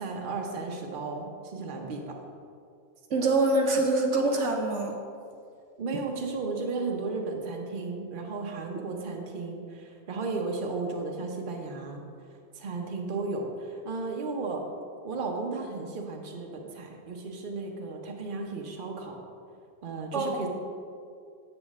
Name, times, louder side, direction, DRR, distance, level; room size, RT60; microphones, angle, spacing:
voice 1, 0.0-2.2 5.8-12.0 12.5-14.6 15.0-19.2 19.8-20.5, right 3 dB, 45° right, 1 dB, 1.0 m, -34 dB
voice 2, 3.1-4.9 20.1-20.4, right 2 dB, 75° right, 2 dB, 1.1 m, -25 dB
7.9 x 7.5 x 3.6 m, 2.3 s
omnidirectional pair, 1.3 m